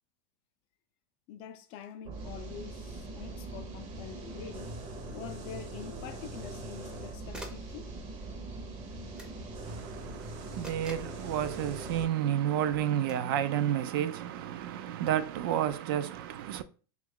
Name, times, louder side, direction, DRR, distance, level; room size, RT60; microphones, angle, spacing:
voice 1, 1.3-4.8 5.1-7.9, left 8 dB, 45° left, 0.4 m, -45 dB
sound 1, 2.0-12.0, right 2 dB, 40° right, 0.7 m, -42 dB
sound 2, 4.1-4.2 6.5-7.0 7.3-7.7 9.2-9.4 10.6-11.2 13.0-13.3, equal, 5° right, 0.6 m, -46 dB
voice 2, 9.6-16.6, right 11 dB, 65° right, 0.4 m, -31 dB
2.9 x 2.3 x 3.6 m
supercardioid pair, 145°, 13 cm